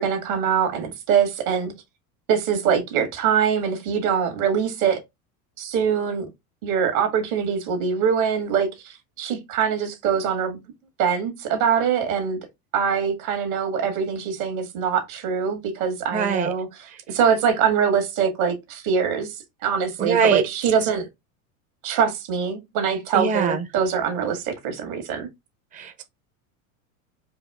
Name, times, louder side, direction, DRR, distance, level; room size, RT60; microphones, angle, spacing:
voice 1, 0.0-1.7 2.3-5.0 5.6-6.3 6.6-10.6 11.0-12.4 12.7-21.0 21.8-25.3, right 7 dB, 70° right, 1.8 m, -23 dB
voice 2, 16.1-16.5 20.0-20.4 23.1-23.6 25.7-26.0, right 6 dB, 20° right, 0.6 m, -22 dB
4.7 x 2.6 x 3.5 m
hypercardioid pair, 85°, 43 cm